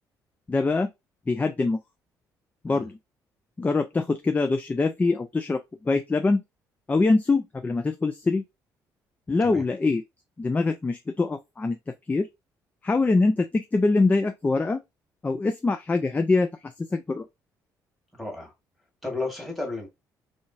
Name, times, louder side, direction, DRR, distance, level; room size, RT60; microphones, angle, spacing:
voice 1, 0.5-0.9 1.3-1.8 2.6-3.0 3.6-6.4 6.9-8.4 9.3-10.0 10.4-11.8 12.1-12.3 12.8-14.8 15.2-17.3, left 3 dB, 15° left, 0.3 m, -24 dB
voice 2, 18.1-18.5 19.0-19.9, left 2 dB, ahead, 1.4 m, -33 dB
3.7 x 2.5 x 2.4 m
figure-of-eight pair, 45°, 10 cm